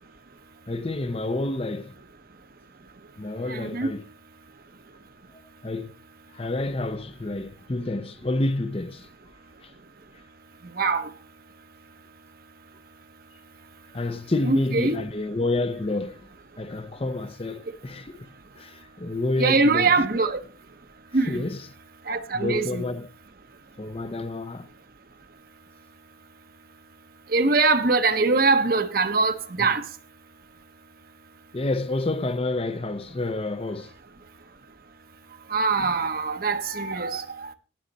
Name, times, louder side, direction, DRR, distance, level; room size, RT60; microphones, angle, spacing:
voice 1, 0.7-2.0 3.2-4.1 5.3-5.9 6.3-9.1 9.6-9.7 13.9-16.3 16.6-19.9 21.3-21.7 22.3-23.1 23.8-24.7 29.6-29.7 31.5-33.9, left 2 dB, 30° left, 0.7 m, -29 dB
voice 2, 3.5-3.9 10.8-11.1 14.5-15.0 19.4-20.4 21.1-21.4 22.1-22.8 27.3-29.9 35.5-37.5, right 3 dB, 50° right, 1.1 m, -23 dB
18.0 x 6.5 x 4.1 m
head